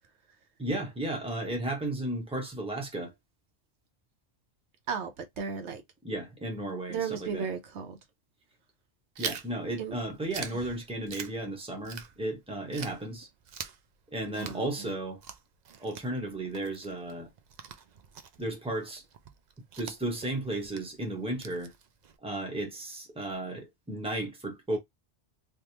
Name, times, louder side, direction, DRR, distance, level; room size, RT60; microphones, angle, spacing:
voice 1, 0.6-3.1 6.0-7.5 9.2-13.3 14.1-15.2 15.8-17.3 18.4-19.0 19.8-21.7 22.2-24.8, right 1 dB, 5° right, 1.0 m, -34 dB
voice 2, 4.9-5.8 6.9-8.0 9.8-10.0 10.5-10.6 14.3-14.9, right 6 dB, 70° right, 1.0 m, -35 dB
Chewing mastication, 9.2-12.4 12.7-22.2, right 7 dB, 50° right, 0.5 m, -44 dB
3.4 x 2.6 x 2.9 m
omnidirectional pair, 1.2 m